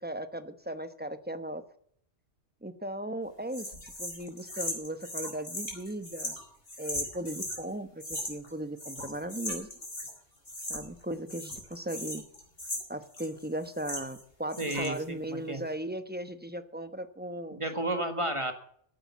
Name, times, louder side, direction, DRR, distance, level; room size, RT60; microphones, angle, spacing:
voice 1, 0.0-1.6 2.6-3.7 4.0-6.3 6.8-9.7 10.7-12.2 12.9-17.6, right 1 dB, 10° right, 10 dB, 0.9 m, -37 dB
sound 1, 3.5-7.6 8.0-8.5 8.8-10.2 10.4-11.0 11.3-14.2 14.5-15.0, left 1 dB, 55° left, 5.0 m, -38 dB
voice 2, 14.6-15.6 17.5-18.5, right 1 dB, 25° right, 6 dB, 1.7 m, -32 dB
15.0 x 8.9 x 7.2 m, 0.65 s
omnidirectional pair, 1.2 m